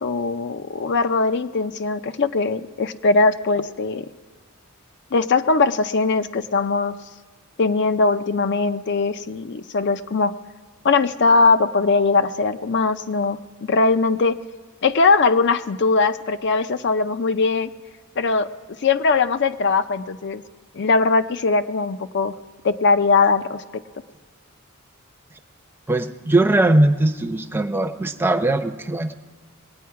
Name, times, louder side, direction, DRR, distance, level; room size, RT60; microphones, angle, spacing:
voice 1, 0.0-4.1 5.1-7.0 7.6-10.3 10.8-14.4 14.8-17.7 18.2-18.5 18.8-20.4 20.7-22.3 22.6-23.8, left 4 dB, 50° left, 11 dB, 0.5 m, -20 dB
voice 2, 25.9-29.2, right 2 dB, 10° right, 5 dB, 0.6 m, -20 dB
21.5 x 9.3 x 4.7 m, 1.5 s
head